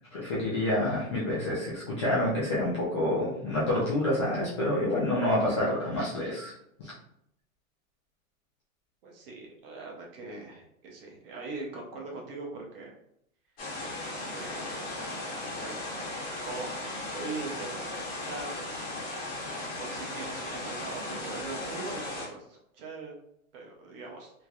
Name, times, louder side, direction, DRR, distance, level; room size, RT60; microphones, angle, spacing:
voice 1, 0.1-6.5 6.8-6.9, left 1 dB, 25° left, -7 dB, 0.4 m, -28 dB
voice 2, 9.0-12.9 13.8-13.9 14.3-16.2 16.5-18.6 19.7-23.1 23.5-24.3, right 3 dB, 45° right, 0 dB, 0.9 m, -41 dB
sound 1, 13.6-22.3, left 2 dB, 45° left, 1.2 m, -37 dB
3.2 x 2.9 x 2.3 m, 0.74 s
supercardioid pair, 160°, 41 cm